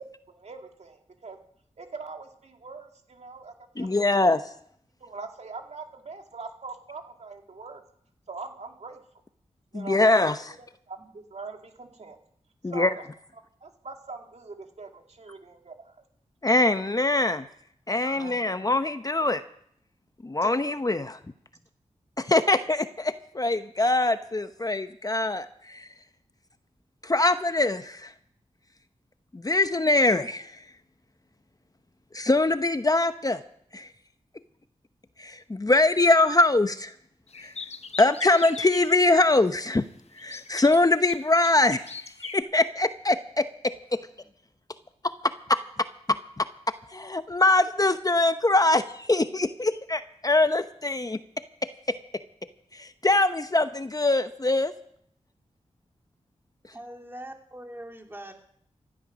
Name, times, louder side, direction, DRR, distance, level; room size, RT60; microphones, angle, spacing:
voice 1, 0.3-1.4 1.8-4.2 5.0-7.8 8.3-9.0 9.7-10.2 10.9-12.2 12.7-12.9 13.6-16.0 18.0-18.6 20.4-20.8, right 4 dB, 65° right, 3 dB, 2.3 m, -42 dB
voice 2, 3.8-4.5 9.7-10.4 12.6-12.9 16.4-17.5 17.9-19.4 20.2-21.2 22.2-25.9 27.0-28.1 29.3-30.7 32.1-33.4 33.7-33.9 35.2-36.9 37.4-37.5 38.0-39.8 40.1-43.7 45.5-45.6 46.4-46.5 46.9-51.2 51.9-52.0 52.7-54.7, left 2 dB, 30° left, 10 dB, 0.9 m, -23 dB
sound 1, 37.3-39.4 40.2-42.4, left 5 dB, 60° left, 0.8 m, -41 dB
voice 3, 56.7-58.3, right 1 dB, 20° right, 2 dB, 3.1 m, -42 dB
16.0 x 11.5 x 6.3 m, 0.67 s
cardioid pair, 50°, 12 cm